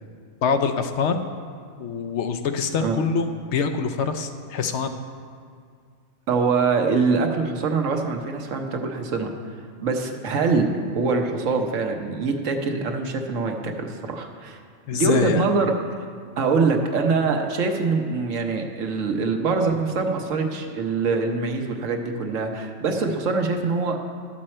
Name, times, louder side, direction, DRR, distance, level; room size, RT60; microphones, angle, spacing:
voice 1, 0.4-1.2 1.8-4.9 14.9-15.4, left 5 dB, 70° left, 8 dB, 0.9 m, -24 dB
voice 2, 6.3-9.3 9.8-14.6 14.9-15.7 16.4-24.0, right 4 dB, 90° right, 4 dB, 1.3 m, -24 dB
12.0 x 7.4 x 4.3 m, 2.2 s
omnidirectional pair, 1.3 m